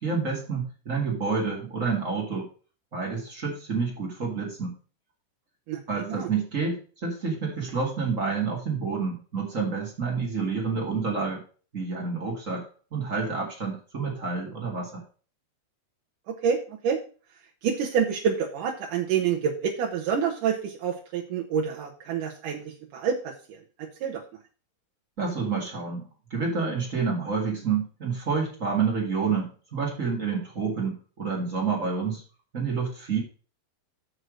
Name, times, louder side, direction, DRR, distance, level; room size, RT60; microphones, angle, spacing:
voice 1, 0.0-2.5 2.9-4.7 5.9-11.4 11.7-12.6 12.9-15.0 25.2-26.0 26.3-32.2 32.5-33.2, right 5 dB, 40° right, -1 dB, 1.1 m, -28 dB
voice 2, 5.7-6.3 16.3-16.6 16.8-17.0 17.6-23.3 24.0-24.2, right 7 dB, 80° right, 0 dB, 1.8 m, -27 dB
6.6 x 6.2 x 6.3 m, 0.38 s
omnidirectional pair, 5.2 m